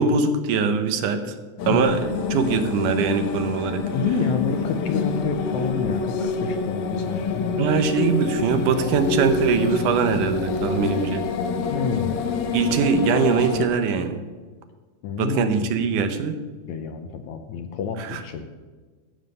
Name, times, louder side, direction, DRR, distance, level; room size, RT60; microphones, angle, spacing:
voice 1, 0.0-1.4 1.7-3.9 7.6-11.2 12.5-14.2 15.2-16.4 18.0-18.2, right 5 dB, 75° right, 8 dB, 2.3 m, -22 dB
sound 1, 1.6-13.7, left 4 dB, 90° left, 3.0 m, -27 dB
voice 2, 3.9-7.5 11.7-12.3 15.0-15.7 16.7-18.5, left 5 dB, 70° left, 7 dB, 1.9 m, -28 dB
15.0 x 7.5 x 6.7 m, 1.4 s
omnidirectional pair, 3.9 m